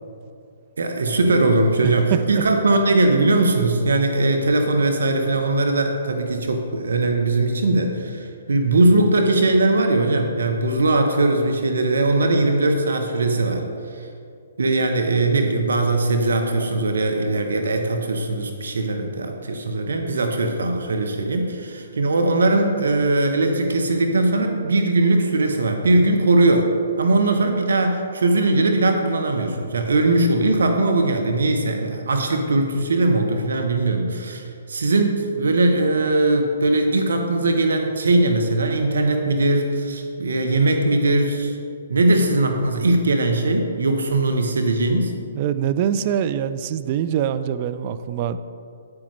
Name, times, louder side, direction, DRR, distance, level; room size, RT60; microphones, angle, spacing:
voice 1, 0.8-13.7 13.9-14.1 14.6-26.7 27.0-41.6 41.9-45.1, right 2 dB, 70° right, 4 dB, 0.8 m, -20 dB
voice 2, 45.3-48.4, right 9 dB, 40° right, 11 dB, 0.4 m, -24 dB
9.5 x 8.5 x 3.2 m, 2.4 s
figure-of-eight pair, 130°, 0 cm